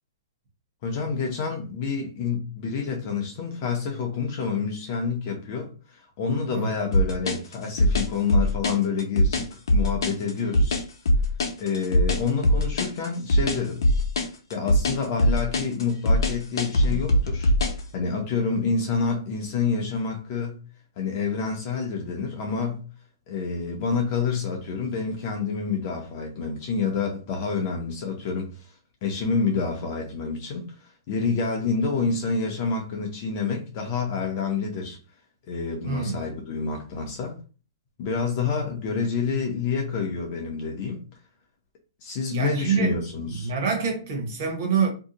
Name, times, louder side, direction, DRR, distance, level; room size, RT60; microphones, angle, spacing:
voice 1, 0.8-10.8 11.6-13.8 14.5-17.5 17.9-20.6 21.0-22.8 23.3-28.6 29.0-35.0 35.5-37.3 38.0-41.0 42.0-43.5, left 5 dB, 25° left, 0.5 m, -28 dB
sound 1, 6.9-17.8, left 1 dB, 65° left, 0.7 m, -21 dB
voice 2, 35.8-36.2 42.3-42.9 43.4-44.9, right 5 dB, 35° right, 0.9 m, -25 dB
2.6 x 2.1 x 3.7 m
hypercardioid pair, 180°, 2 cm